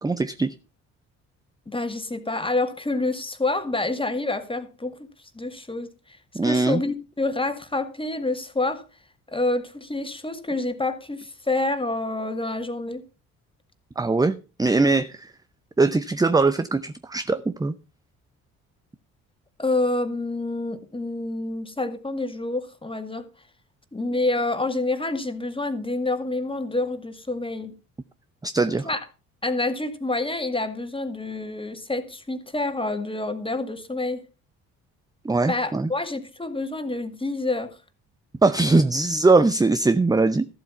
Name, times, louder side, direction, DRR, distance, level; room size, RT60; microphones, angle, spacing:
voice 1, 0.0-0.5 6.3-6.8 14.0-15.3 15.8-17.7 28.4-28.9 35.2-35.9 38.4-40.5, right 3 dB, 10° right, 0.7 m, -21 dB
voice 2, 1.7-5.1 5.3-5.9 6.4-8.8 9.3-13.0 19.6-23.3 23.9-27.7 28.8-29.0 29.4-34.2 35.5-37.8, left 2 dB, 15° left, 2.1 m, -27 dB
14.0 x 7.8 x 5.6 m
hypercardioid pair, 50°, 40 cm